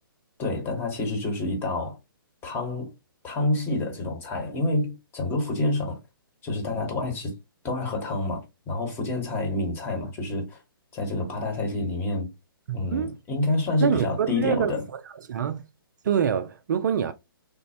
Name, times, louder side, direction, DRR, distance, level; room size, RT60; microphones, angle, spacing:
voice 1, 0.4-2.0 2.4-2.9 3.2-6.0 6.4-7.3 7.6-10.6 10.9-12.3 12.7-14.8, left 2 dB, 20° left, 0.9 m, -28 dB
voice 2, 12.7-13.2 13.8-15.7 16.0-17.1, right 8 dB, 55° right, 0.4 m, -26 dB
3.3 x 2.0 x 2.6 m
figure-of-eight pair, 130°, 12 cm